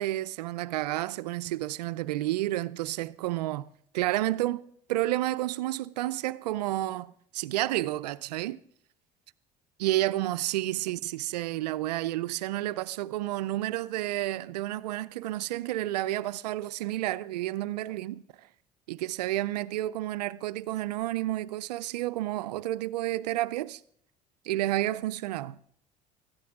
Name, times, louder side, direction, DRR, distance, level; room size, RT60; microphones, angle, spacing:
voice 1, 0.0-3.7 3.9-4.6 4.9-8.6 9.8-18.2 18.9-23.8 24.4-25.6, right 15 dB, 85° right, 0.5 m, -30 dB
19.5 x 14.0 x 3.6 m
hypercardioid pair, 70°, 20 cm